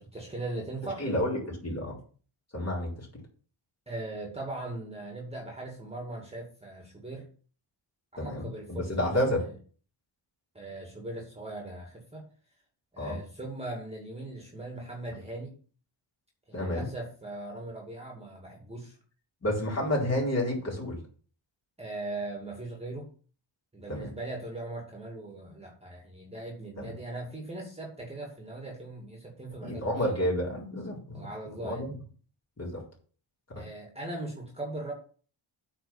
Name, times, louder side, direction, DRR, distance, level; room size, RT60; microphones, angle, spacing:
voice 1, 0.0-1.0 3.9-7.3 8.1-9.5 10.5-12.3 12.9-15.6 16.5-19.0 21.8-23.1 23.7-30.2 31.1-31.8 33.6-34.9, right 2 dB, 15° right, 0 dB, 2.3 m, -39 dB
voice 2, 1.0-2.0 2.5-3.1 8.2-9.4 13.0-13.2 16.5-16.9 19.4-21.0 23.9-24.1 26.8-26.9 29.6-31.3 31.6-31.9 32.6-32.8 33.5-33.6, left 1 dB, 30° left, -3 dB, 4.1 m, -30 dB
8.8 x 4.5 x 7.1 m, 0.41 s
wide cardioid pair, 125°, 48 cm